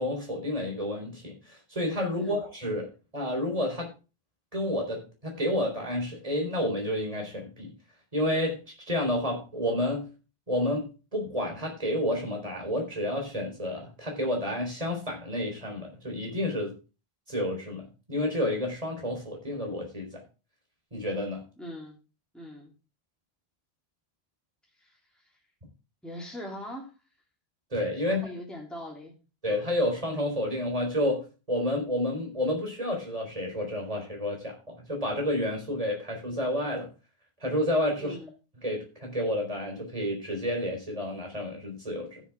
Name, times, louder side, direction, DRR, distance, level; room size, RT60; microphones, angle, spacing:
voice 1, 0.0-3.9 4.5-7.7 8.1-8.6 8.9-10.1 10.5-16.7 17.3-20.2 20.9-21.4 27.7-28.3 29.4-36.9 37.4-38.2 38.6-42.2, left 1 dB, 35° right, 1 dB, 4.1 m, -30 dB
voice 2, 21.6-22.0 22.3-22.7 24.8-25.0 26.0-26.9 27.9-29.2 38.0-38.3, left 1 dB, ahead, -3 dB, 3.1 m, -41 dB
15.0 x 7.3 x 3.5 m, 0.31 s
omnidirectional pair, 1.1 m